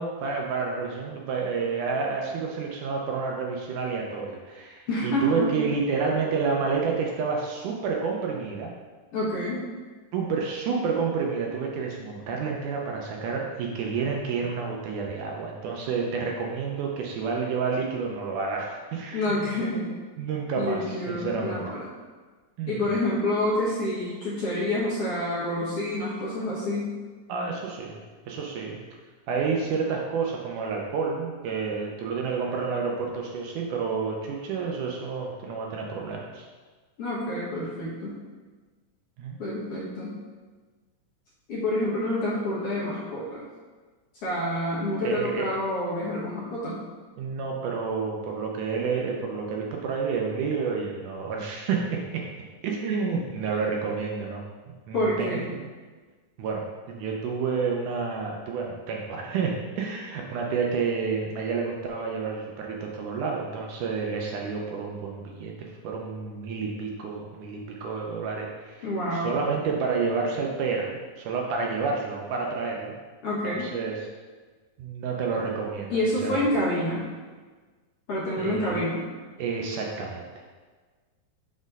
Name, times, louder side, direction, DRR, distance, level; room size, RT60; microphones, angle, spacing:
voice 1, 0.0-8.7 10.1-19.5 20.2-21.6 22.6-22.7 27.3-28.0 28.3-28.8 29.3-36.5 39.2-39.4 45.0-45.5 47.2-52.2 52.6-54.4 54.9-55.7 56.4-73.0 73.4-73.9 74.8-76.4 78.4-78.8 79.4-80.3, right 5 dB, 75° right, 0 dB, 2.1 m, -29 dB
voice 2, 4.9-5.6 9.1-9.7 19.1-19.9 20.6-21.9 22.7-27.0 37.0-38.2 39.4-40.2 41.5-43.4 44.2-46.8 54.9-55.5 68.8-69.3 73.2-73.8 75.9-77.1 78.1-79.1, left 1 dB, 55° left, -7 dB, 1.9 m, -28 dB
6.1 x 4.3 x 5.3 m, 1.4 s
omnidirectional pair, 4.0 m